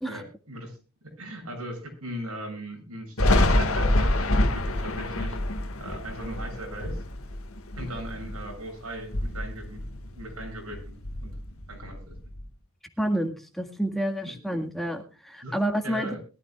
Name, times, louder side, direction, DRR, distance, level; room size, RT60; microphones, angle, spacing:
voice 1, 0.1-0.8 1.0-5.4 5.8-7.0 7.8-9.8 10.1-11.3 11.7-12.1 14.2-14.3 15.4-15.6 15.8-16.2, right 1 dB, 90° right, 2 dB, 7.7 m, -38 dB
Thunder, 3.2-8.6 9.0-10.4 10.7-12.4, left 1 dB, 70° left, 1.8 m, -26 dB
voice 2, 13.0-16.1, right 1 dB, ahead, 3 dB, 1.8 m, -29 dB
22.0 x 13.5 x 2.4 m, 0.34 s
head